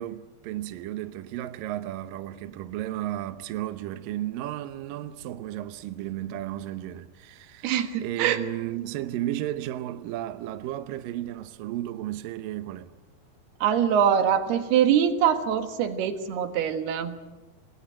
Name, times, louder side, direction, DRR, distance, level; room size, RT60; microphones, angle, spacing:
voice 1, 0.0-12.9, right 13 dB, 75° right, 2.4 m, -34 dB
voice 2, 7.6-8.4 13.6-17.2, right 8 dB, 90° right, 3.6 m, -23 dB
27.0 x 20.0 x 8.9 m
omnidirectional pair, 4.4 m